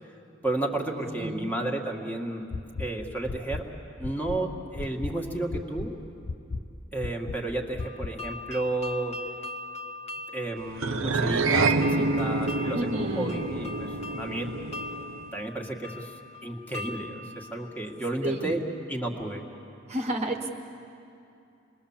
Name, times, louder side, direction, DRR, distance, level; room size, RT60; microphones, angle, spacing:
voice 1, 0.4-2.5 2.8-3.6 4.0-5.9 6.9-9.2 10.3-14.5 15.3-16.1 16.4-18.6 18.9-19.4, right 2 dB, 10° left, 0 dB, 1.8 m, -32 dB
voice 2, 1.1-1.5 12.7-13.4 18.2-18.6 19.9-20.5, right 1 dB, 35° right, 2 dB, 1.2 m, -31 dB
sound 1, 2.5-2.8 3.3-3.6 4.0-4.4 4.8-5.1 5.5-5.9 6.3-6.6 7.0-7.4 7.8-8.1, left 3 dB, 50° left, 0.7 m, -33 dB
sound 2, 7.8-18.6, left 3 dB, 30° left, 1.5 m, -42 dB
sound 3, 10.8-15.3, right 3 dB, 80° right, 0.9 m, -27 dB
27.0 x 21.5 x 7.2 m, 2.7 s
head